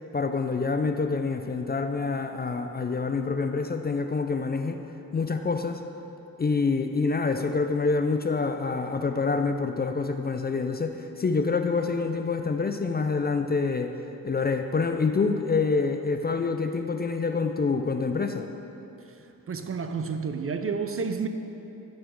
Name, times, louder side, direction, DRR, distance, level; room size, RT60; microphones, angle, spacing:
voice 1, 0.1-4.8 5.1-5.8 6.4-13.9 14.2-18.5, left 4 dB, 25° left, 6 dB, 0.4 m, -26 dB
voice 2, 19.5-21.3, right 5 dB, 40° right, 8 dB, 0.5 m, -30 dB
12.0 x 4.3 x 4.5 m, 3.0 s
cardioid pair, 60°, 36 cm